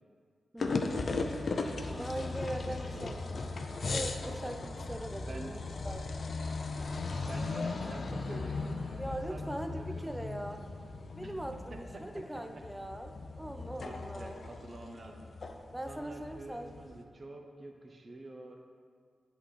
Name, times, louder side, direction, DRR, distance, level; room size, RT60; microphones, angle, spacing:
voice 1, 0.5-1.0 1.9-3.4 3.8-5.6 5.8-6.0 9.0-10.6 11.1-14.4 15.7-16.8, right 1 dB, 5° right, 6 dB, 0.5 m, -41 dB
sound 1, 0.6-17.0, left 3 dB, 60° left, 0.5 m, -37 dB
voice 2, 1.5-3.5 4.6-4.7 5.3-5.5 7.1-10.3 11.2-11.3 11.9-12.0 13.8-15.2 15.9-18.6, right 1 dB, 50° right, 2 dB, 0.9 m, -47 dB
8.1 x 3.0 x 5.0 m, 2.1 s
supercardioid pair, 45°, 0 cm